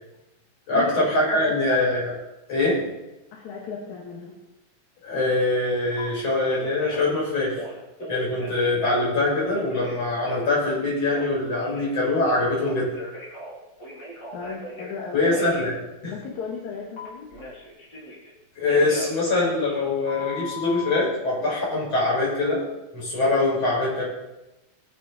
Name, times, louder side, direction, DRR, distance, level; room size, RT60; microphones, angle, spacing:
voice 1, 0.7-2.2 2.5-2.9 5.0-7.6 8.0-12.9 15.1-16.1 18.6-22.6 22.9-24.0, left 2 dB, 55° left, -6 dB, 6.9 m, -23 dB
voice 2, 3.3-4.4 14.3-15.3 16.1-17.3, left 5 dB, 75° left, -1 dB, 2.9 m, -35 dB
Telephone, 6.0-6.1 6.5-7.1 7.5-8.9 9.4-11.9 12.2-15.0 15.3-15.7 17.0-18.3 18.7-21.0, left 1 dB, 35° left, 4.0 m, -38 dB
21.0 x 8.8 x 4.2 m, 0.95 s
omnidirectional pair, 3.4 m